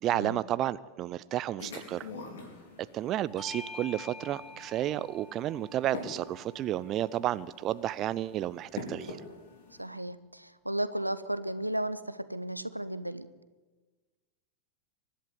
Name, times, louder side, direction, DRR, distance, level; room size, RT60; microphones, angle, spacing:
voice 1, 0.0-2.1 2.9-9.2, right 13 dB, 35° right, 17 dB, 0.6 m, -32 dB
sound 1, 1.6-9.8, left 3 dB, 60° left, 4.7 m, -46 dB
Bell / Doorbell, 3.4-8.2, left 2 dB, 10° left, 1.8 m, -48 dB
voice 2, 9.8-13.3, right 1 dB, 90° right, 14 dB, 0.9 m, -34 dB
23.5 x 11.5 x 9.6 m, 1.3 s
figure-of-eight pair, 90°, 0 cm